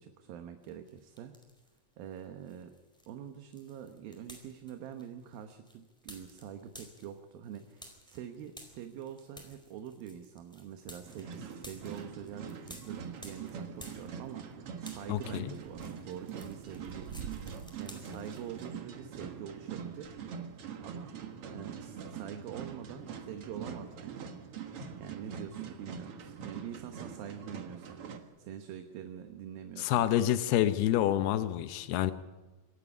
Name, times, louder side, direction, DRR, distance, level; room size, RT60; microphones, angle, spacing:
voice 1, 0.0-1.3 2.0-2.7 3.1-17.1 17.4-20.2 20.5-21.1 21.5-24.3 25.0-30.1, right 9 dB, 75° right, 6 dB, 2.8 m, -45 dB
sound 1, 0.6-1.8 2.1-14.5 14.8-18.7, equal, ahead, 3.9 m, -54 dB
sound 2, 11.1-28.2, right 7 dB, 55° right, 1.7 m, -43 dB
voice 2, 15.1-15.5 24.8-24.9 29.8-32.1, left 12 dB, 85° left, 11 dB, 2.9 m, -28 dB
26.5 x 11.5 x 9.8 m, 1.2 s
omnidirectional pair, 4.5 m